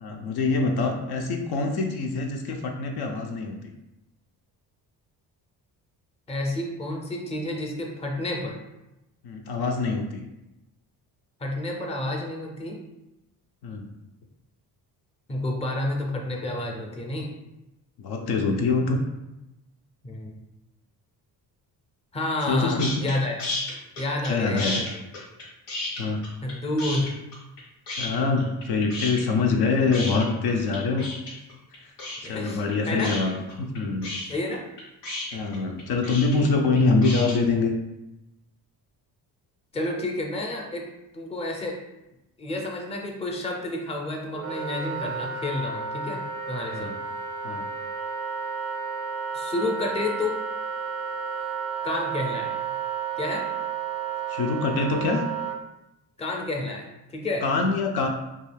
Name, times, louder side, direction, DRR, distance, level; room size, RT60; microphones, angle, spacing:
voice 1, 0.0-3.6 9.2-10.2 13.6-13.9 18.0-19.0 22.5-23.1 24.3-24.7 26.0-26.2 28.0-31.1 32.2-34.1 35.3-37.7 46.7-46.9 47.4-47.7 54.3-55.2 57.4-58.1, left 3 dB, 65° left, 3 dB, 0.5 m, -24 dB
voice 2, 6.3-8.6 11.4-12.8 15.3-17.3 20.0-20.4 22.1-23.4 24.0-25.0 26.4-27.1 32.2-33.2 34.3-34.6 39.7-40.8 41.1-41.8 42.4-46.2 46.5-46.9 49.3-50.4 51.8-52.5 53.2-53.5 56.2-56.9 57.1-57.4, left 2 dB, 15° left, 1 dB, 0.5 m, -30 dB
sound 1, 22.8-23.1 23.4-24.3 24.6-26.5 26.8-27.6 27.9-28.6 28.9-37.4, left 2 dB, 90° left, 1.0 m, -33 dB
Wind instrument woodwind instrument, 44.3-55.6, right 6 dB, 35° right, 0.4 m, -32 dB
2.3 x 2.3 x 3.2 m, 0.94 s
cardioid pair, 75°, 42 cm